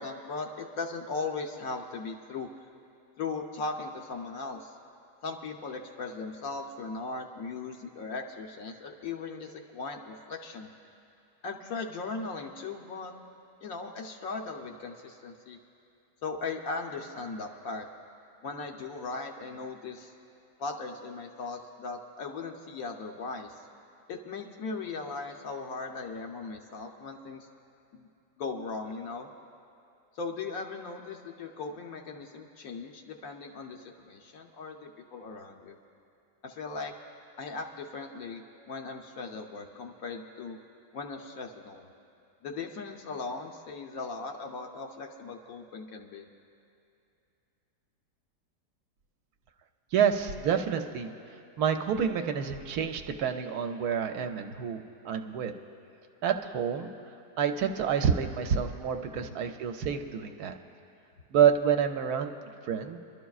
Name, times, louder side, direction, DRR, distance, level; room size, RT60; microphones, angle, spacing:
voice 1, 0.0-2.5 3.2-4.7 5.2-10.7 11.4-13.1 13.6-15.6 16.2-17.9 18.4-20.1 20.6-23.6 24.1-27.5 27.9-28.1 28.4-29.3 30.1-35.8 36.4-36.9 37.4-40.6 40.9-41.9 42.4-46.3 59.2-59.3, left 4 dB, 65° left, 3 dB, 1.1 m, -38 dB
voice 2, 49.9-51.1 51.6-55.5 56.2-56.9 57.4-60.5 61.3-63.0, right 7 dB, 75° right, 6 dB, 1.1 m, -28 dB
26.5 x 12.0 x 2.4 m, 2.6 s
omnidirectional pair, 1.8 m